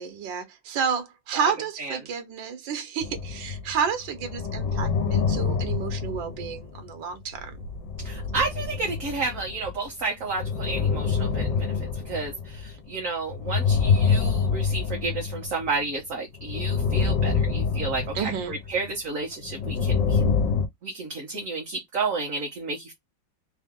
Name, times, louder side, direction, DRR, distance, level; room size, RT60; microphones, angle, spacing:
voice 1, 0.0-7.5 18.1-18.5, right 6 dB, 80° right, 1.7 m, -30 dB
sound 1, 3.0-3.8 4.0-6.9 7.3-9.9 10.2-12.9 13.3-15.8 16.3-18.9 19.4-20.7, left 5 dB, 75° left, 1.6 m, -26 dB
voice 2, 8.0-20.3 20.8-22.9, right 3 dB, 45° right, 1.5 m, -31 dB
3.9 x 2.7 x 3.6 m
omnidirectional pair, 2.0 m